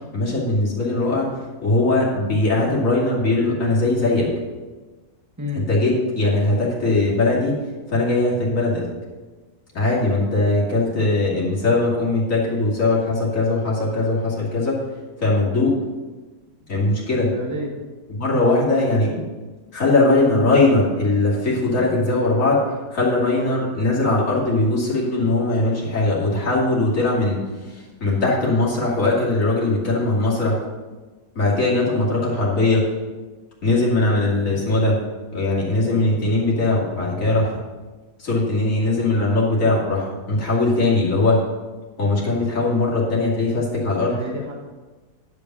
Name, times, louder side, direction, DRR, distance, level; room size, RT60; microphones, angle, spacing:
voice 1, 0.1-1.3 1.6-4.3 5.7-7.6 7.9-8.8 9.7-14.8 15.2-15.8 16.7-17.3 18.2-19.2 19.7-22.6 22.9-27.4 27.7-30.6 31.3-32.9 33.6-35.0 35.3-37.6 38.2-41.4 42.0-44.2, left 2 dB, 55° left, -5 dB, 2.9 m, -20 dB
voice 2, 5.4-5.7 17.2-17.8 44.0-44.5, left 1 dB, 10° right, -1 dB, 1.5 m, -30 dB
10.5 x 5.3 x 6.1 m, 1.3 s
omnidirectional pair, 1.6 m